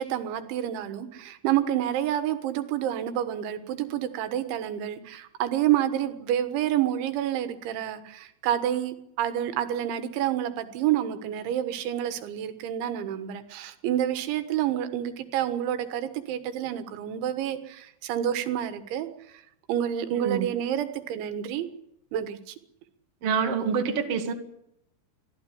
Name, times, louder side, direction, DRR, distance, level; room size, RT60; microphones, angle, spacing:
voice 1, 0.0-19.4 19.7-21.7 22.1-22.6, right 11 dB, 85° right, 10 dB, 3.8 m, -28 dB
voice 2, 20.1-20.5 23.2-24.3, right 6 dB, 40° right, 5 dB, 2.5 m, -27 dB
24.0 x 15.5 x 10.0 m, 0.79 s
omnidirectional pair, 5.2 m